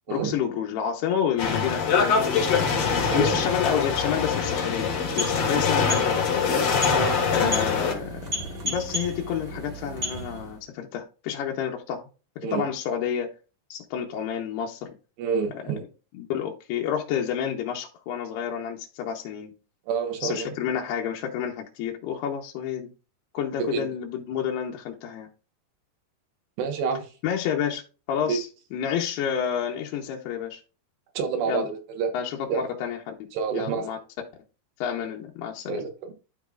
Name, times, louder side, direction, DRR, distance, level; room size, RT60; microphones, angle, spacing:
voice 1, 0.1-2.7 3.1-4.9 5.2-6.2 7.3-8.4 8.6-12.1 12.5-13.3 13.7-14.9 16.2-19.5 20.2-22.9 23.3-25.3 27.2-27.8 28.1-30.6 31.5-31.7 32.1-33.3 33.5-34.0 34.8-35.8, left 8 dB, 80° left, 2.9 m, -29 dB
sound 1, 1.4-7.9, left 6 dB, 50° left, 2.2 m, -24 dB
voice 2, 3.1-3.4 6.9-7.2 12.4-12.7 15.2-15.8 19.9-20.5 23.6-23.8 26.6-27.1 28.3-28.4 31.1-32.1 32.5-32.6 33.3-33.9 35.7-36.1, right 6 dB, 85° right, 3.5 m, -28 dB
sound 2, 4.8-10.6, equal, 40° right, 1.3 m, -34 dB
12.0 x 5.3 x 2.4 m
omnidirectional pair, 4.8 m